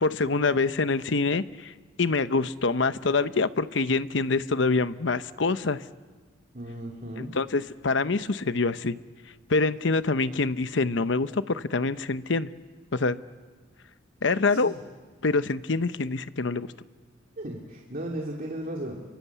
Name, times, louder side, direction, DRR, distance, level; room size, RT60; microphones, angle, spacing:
voice 1, 0.0-1.7 2.0-5.8 7.2-9.0 9.5-12.5 12.9-13.2 14.2-14.7 15.2-16.7, left 3 dB, 70° left, 13 dB, 0.9 m, -25 dB
voice 2, 6.5-7.3 14.5-14.8 17.4-19.0, right 1 dB, 50° right, -1 dB, 2.8 m, -36 dB
29.5 x 24.0 x 8.3 m, 1.4 s
head